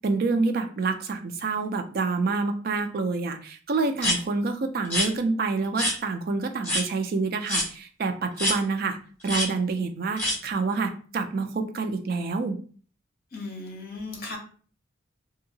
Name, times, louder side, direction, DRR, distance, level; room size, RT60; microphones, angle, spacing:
voice 1, 0.0-9.0 9.2-12.6, right 4 dB, 45° right, 7 dB, 0.3 m, -27 dB
sound 1, 4.0-4.2 4.8-5.1 5.8-6.0 6.6-6.8 7.5-7.7 8.4-8.6 9.2-9.5 10.2-10.4, left 1 dB, 10° left, 1.1 m, -25 dB
voice 2, 13.3-14.4, left 3 dB, 45° left, 1 dB, 0.8 m, -36 dB
2.8 x 2.7 x 2.6 m, 0.42 s
head